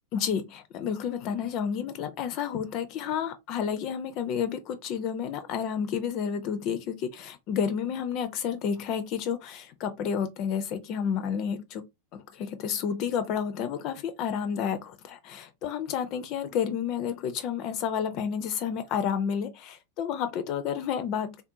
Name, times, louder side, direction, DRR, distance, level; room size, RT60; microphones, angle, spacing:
voice 1, 0.1-11.8 12.1-21.4, left 7 dB, 40° left, 0.4 m, -30 dB
3.4 x 2.5 x 2.6 m
figure-of-eight pair, 90°, 0 cm